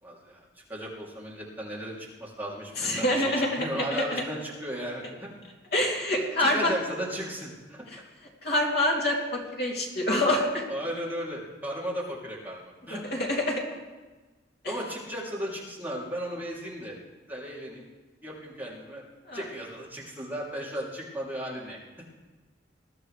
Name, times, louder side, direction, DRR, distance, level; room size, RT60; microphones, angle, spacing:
voice 1, 0.0-5.3 6.4-7.8 10.7-13.2 14.7-16.9 17.3-17.8 18.2-19.0 19.3-21.8, equal, 10° right, -5 dB, 3.1 m, -35 dB
voice 2, 2.8-4.2 5.7-6.7 8.4-10.6 12.9-13.6 19.3-19.4, left 1 dB, 60° left, -2 dB, 3.0 m, -26 dB
20.5 x 12.0 x 3.4 m, 1.3 s
head